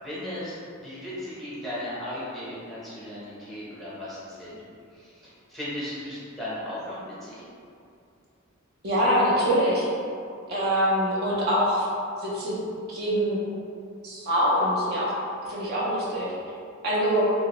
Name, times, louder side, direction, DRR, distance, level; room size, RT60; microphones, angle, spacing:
voice 1, 0.0-4.6 5.0-7.4, left 1 dB, ahead, -11 dB, 0.8 m, -36 dB
voice 2, 8.8-9.9 10.5-11.9 12.2-12.5 12.9-13.4 14.0-15.1 15.4-16.3 16.8-17.3, equal, 50° right, -6 dB, 0.5 m, -24 dB
2.8 x 2.6 x 3.0 m, 2.4 s
head